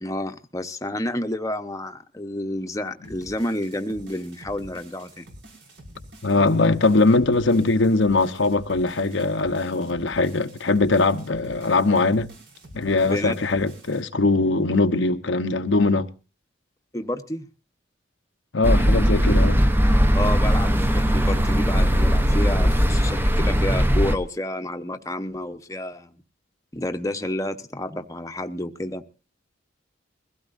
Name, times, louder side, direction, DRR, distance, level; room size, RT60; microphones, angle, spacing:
voice 1, 0.0-5.2 13.1-13.4 16.9-17.4 20.1-26.1 26.7-29.0, left 1 dB, 15° left, 1.0 m, -30 dB
sound 1, 3.0-14.0, right 1 dB, 70° right, 5.7 m, -47 dB
voice 2, 6.2-12.3 12.7-16.1 18.5-19.6, left 3 dB, 85° left, 1.0 m, -21 dB
sound 2, 18.6-24.2, equal, 10° right, 0.8 m, -19 dB
22.0 x 16.0 x 2.6 m
head